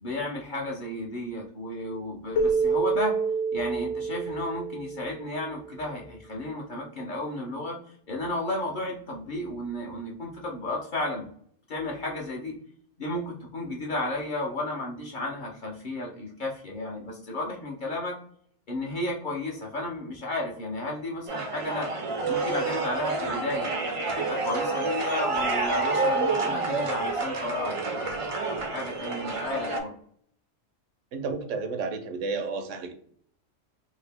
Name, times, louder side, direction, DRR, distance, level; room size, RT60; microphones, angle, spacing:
voice 1, 0.0-3.2 3.5-11.3 11.7-12.5 13.0-18.2 18.7-21.9 22.3-23.7 24.2-29.9, left 1 dB, 50° left, -2 dB, 0.7 m, -33 dB
Keyboard (musical), 2.4-5.6, right 4 dB, 85° left, 1.0 m, -27 dB
sound 1, 21.3-29.8, right 3 dB, 50° right, 0.3 m, -28 dB
voice 2, 31.1-32.9, right 4 dB, 75° right, 7 dB, 0.9 m, -31 dB
2.8 x 2.7 x 3.3 m, 0.62 s
omnidirectional pair, 1.3 m